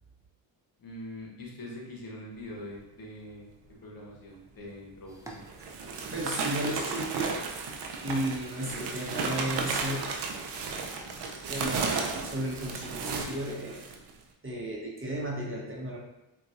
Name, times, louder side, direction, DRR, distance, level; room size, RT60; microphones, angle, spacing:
voice 1, 0.8-3.5 3.8-5.4 11.6-12.1, left 1 dB, 45° left, -2 dB, 0.9 m, -43 dB
sound 1, 4.7-4.8 5.4-14.1, right 4 dB, 60° right, 0.6 m, -34 dB
sound 2, 5.1-13.3, right 1 dB, 5° right, 0.5 m, -53 dB
voice 2, 6.1-7.4 8.0-10.0 11.5-13.8 14.4-16.0, right 1 dB, 25° right, -4 dB, 0.9 m, -34 dB
3.8 x 2.3 x 2.5 m, 0.92 s
supercardioid pair, 70°, 47 cm